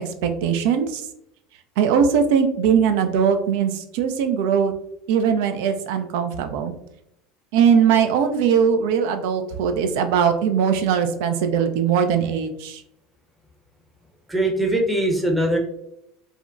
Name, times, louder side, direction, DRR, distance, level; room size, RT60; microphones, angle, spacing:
voice 1, 0.2-1.0 1.8-4.7 5.1-6.7 7.5-12.8, right 7 dB, 65° right, 7 dB, 0.3 m, -20 dB
voice 2, 14.3-15.6, right 1 dB, 10° right, 1 dB, 0.6 m, -21 dB
3.6 x 2.1 x 2.3 m, 0.80 s
figure-of-eight pair, 75°, 0 cm